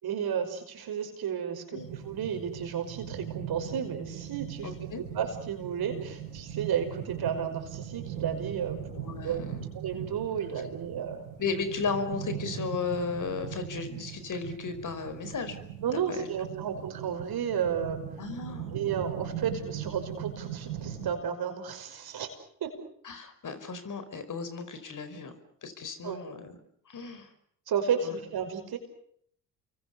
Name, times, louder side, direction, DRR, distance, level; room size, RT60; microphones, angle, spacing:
voice 1, 0.0-8.8 9.2-9.4 9.7-11.2 15.8-18.0 18.7-22.3 22.6-22.8 26.0-26.2 27.7-28.8, right 8 dB, 60° right, 7 dB, 5.7 m, -32 dB
sound 1, 1.8-21.1, right 9 dB, 90° right, 7.4 m, -40 dB
voice 2, 4.6-5.0 8.9-9.7 11.4-15.6 15.9-16.3 16.6-16.7 18.2-18.7 23.0-25.3 25.6-26.6 26.9-27.3 28.0-28.1, left 5 dB, 45° left, 10 dB, 5.0 m, -35 dB
29.5 x 23.5 x 6.9 m, 0.67 s
hypercardioid pair, 60°, 41 cm